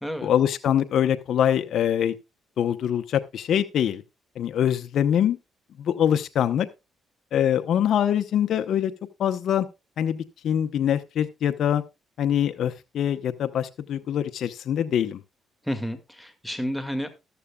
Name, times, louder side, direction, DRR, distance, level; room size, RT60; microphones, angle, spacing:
voice 1, 0.2-2.2 2.6-4.0 4.4-5.4 5.8-6.7 7.3-8.9 9.2-9.7 10.0-11.8 12.2-15.2, left 9 dB, 70° left, 0.8 m, -24 dB
voice 2, 15.6-17.1, equal, ahead, 2.0 m, -30 dB
14.0 x 12.5 x 2.3 m
cardioid pair, 90°, 0 cm